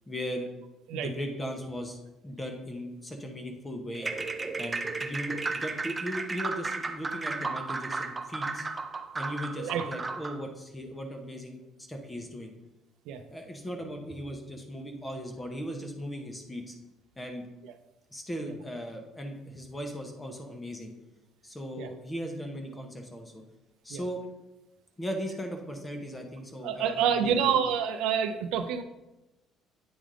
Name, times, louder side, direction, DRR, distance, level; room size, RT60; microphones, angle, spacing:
voice 1, 0.1-0.5 0.9-2.0 2.2-4.1 4.6-8.7 9.1-11.6 11.9-12.5 13.3-16.7 17.2-17.5 18.1-20.9 21.4-23.4 23.8-24.2 25.0-27.5, equal, 10° left, 4 dB, 0.7 m, -38 dB
sound 1, 3.9-10.4, right 3 dB, 15° right, 0.3 m, -34 dB
voice 2, 26.6-28.8, right 8 dB, 85° right, 8 dB, 0.5 m, -27 dB
8.8 x 3.4 x 3.7 m, 0.98 s
cardioid pair, 180°, 0 cm